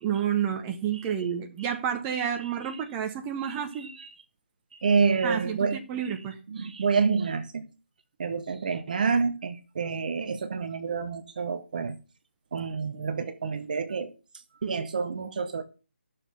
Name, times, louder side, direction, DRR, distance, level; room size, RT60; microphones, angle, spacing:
voice 1, 0.0-3.9 5.2-6.4, right 9 dB, 15° right, 1.0 m, -30 dB
voice 2, 4.7-5.8 6.0-6.1 6.5-7.6 8.2-12.0 12.5-14.1 14.6-15.6, right 5 dB, 45° right, 1.0 m, -28 dB
12.0 x 6.7 x 5.7 m
figure-of-eight pair, 145°, 7 cm